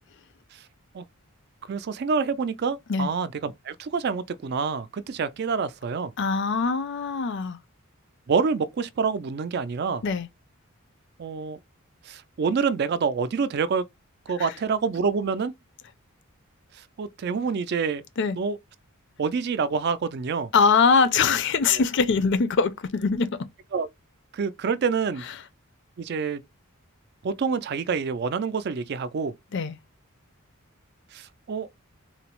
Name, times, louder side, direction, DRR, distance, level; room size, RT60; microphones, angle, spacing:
voice 1, 1.7-6.1 8.3-10.0 11.2-11.6 12.1-13.8 14.3-15.5 17.0-18.0 18.3-18.6 19.2-20.5 21.7-21.8 23.7-23.9 24.3-25.2 26.0-26.4 27.2-29.3 31.1-31.7, right 5 dB, 50° right, 0.3 m, -27 dB
voice 2, 6.2-7.6 10.0-10.3 14.4-14.5 18.2-18.4 20.5-23.4 29.5-29.8, left 5 dB, 55° left, 0.5 m, -22 dB
3.8 x 2.0 x 2.9 m
head